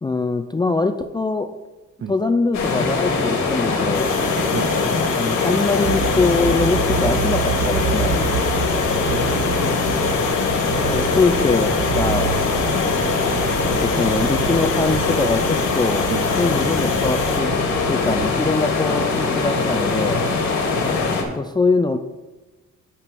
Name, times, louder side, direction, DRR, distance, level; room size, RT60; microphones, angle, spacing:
voice 1, 0.0-1.5 2.1-4.1 5.1-8.2 10.9-12.4 13.6-16.0 16.4-17.5 17.9-20.2 21.1-22.0, left 3 dB, 15° left, 8 dB, 0.4 m, -22 dB
sound 1, 2.5-21.2, left 4 dB, 65° left, 1.9 m, -22 dB
sound 2, 3.9-17.4, left 7 dB, 85° left, 1.0 m, -33 dB
sound 3, 5.8-18.3, right 8 dB, 80° right, 0.7 m, -29 dB
voice 2, 9.1-10.2 13.3-13.6 16.1-16.3 20.7-21.4, right 7 dB, 40° right, 7 dB, 0.7 m, -32 dB
6.1 x 5.6 x 6.9 m, 1.1 s
cardioid pair, 90°, 30 cm